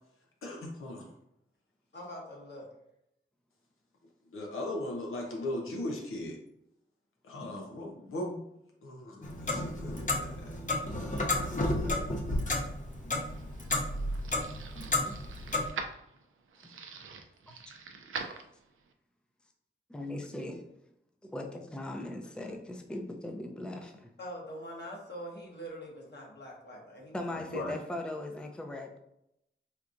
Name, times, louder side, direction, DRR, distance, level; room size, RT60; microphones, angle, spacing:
voice 1, 0.4-1.1 4.3-6.4 7.2-8.4 8.8-10.6 27.3-27.8, left 1 dB, 90° left, 0 dB, 0.6 m, -38 dB
voice 2, 1.9-2.7 24.2-27.6, equal, 55° left, -2 dB, 1.2 m, -44 dB
Clock, 9.2-15.7, left 2 dB, 40° left, 0.7 m, -32 dB
sound 1, 13.0-18.9, right 5 dB, 75° right, 0.4 m, -44 dB
voice 3, 19.9-20.7 21.2-24.1 27.1-29.0, left 1 dB, 5° left, 3 dB, 0.5 m, -39 dB
4.4 x 2.5 x 2.5 m, 0.80 s
cardioid pair, 50°, 21 cm